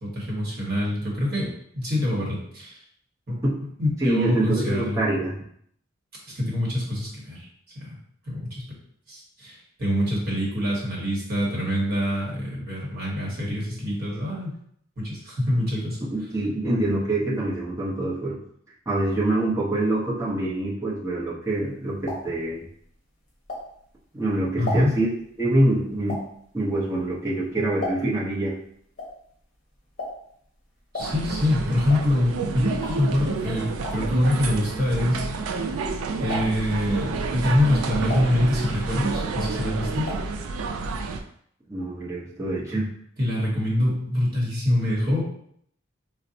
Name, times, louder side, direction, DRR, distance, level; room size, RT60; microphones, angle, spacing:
voice 1, 0.0-1.5 1.7-2.8 3.3-3.5 3.8-5.0 6.4-7.5 7.7-8.0 8.3-8.7 9.1-14.5 15.0-16.1 24.6-24.9 30.9-35.7 36.2-40.0 43.2-45.2, left 1 dB, 50° right, -5 dB, 1.1 m, -25 dB
voice 2, 4.0-5.3 16.0-18.4 18.9-22.7 24.1-25.1 25.4-26.2 26.5-28.5 41.7-42.9, right 1 dB, 15° right, -7 dB, 0.8 m, -25 dB
sound 1, 21.5-24.0 24.4-28.3 28.6-35.9 36.2-36.8 37.3-39.0 39.3-40.4 40.6-40.7 41.0-41.1, left 2 dB, 40° left, 0.9 m, -37 dB
beitou library, 31.0-41.2, right 4 dB, 85° right, 0.3 m, -30 dB
4.0 x 2.1 x 2.7 m, 0.67 s
head